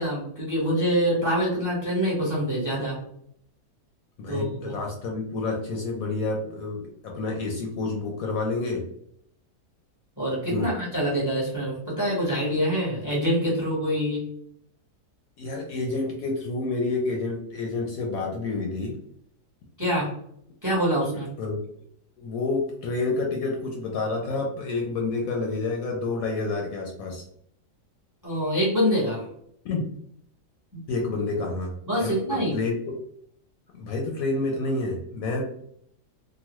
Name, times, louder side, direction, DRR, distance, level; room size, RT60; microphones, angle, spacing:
voice 1, 0.0-3.0 4.3-4.7 10.2-14.2 19.8-20.1 20.6-21.3 28.2-29.3 30.7-30.8 31.9-32.6, equal, 15° right, -5 dB, 0.8 m, -25 dB
voice 2, 4.2-8.9 10.5-10.7 15.4-19.0 21.4-21.6 22.2-27.2 29.6-29.9 30.9-31.7 32.0-32.8 33.7-35.4, left 3 dB, 70° left, 0 dB, 0.9 m, -29 dB
2.9 x 2.2 x 2.9 m, 0.69 s
omnidirectional pair, 1.8 m